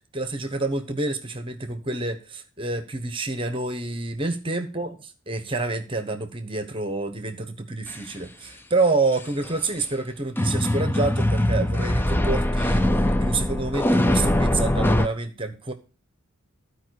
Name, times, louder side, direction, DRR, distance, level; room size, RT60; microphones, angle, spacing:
voice 1, 0.1-5.0 5.3-15.7, right 3 dB, 25° right, 7 dB, 1.1 m, -28 dB
sound 1, 7.9-8.0 9.1-9.5 10.4-15.1, left 1 dB, 10° left, 0.5 m, -22 dB
13.5 x 5.0 x 6.4 m, 0.34 s
head